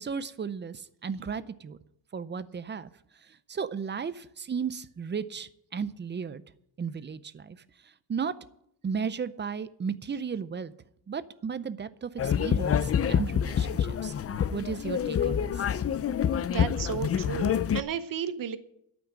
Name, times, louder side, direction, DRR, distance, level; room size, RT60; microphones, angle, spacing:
voice 1, 0.0-1.8 2.1-2.9 3.5-6.4 6.8-7.6 8.1-8.4 8.8-10.7 11.1-14.1 14.5-15.6, right 6 dB, 25° right, 15 dB, 0.5 m, -34 dB
sound 1, 12.2-17.8, left 8 dB, 30° left, 0.4 m, -27 dB
voice 2, 16.4-18.6, right 8 dB, 45° right, 12 dB, 0.9 m, -33 dB
12.5 x 6.1 x 9.6 m, 0.75 s
cardioid pair, 150°, 49 cm